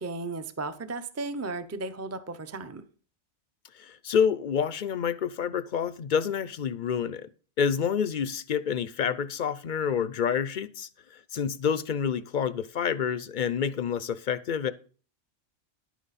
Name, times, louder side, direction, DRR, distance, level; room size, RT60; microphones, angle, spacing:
voice 1, 0.0-2.8, right 3 dB, 15° right, 0.5 m, -35 dB
voice 2, 3.7-7.3 7.6-14.7, left 7 dB, 55° left, 0.6 m, -28 dB
11.0 x 9.2 x 4.1 m
omnidirectional pair, 1.3 m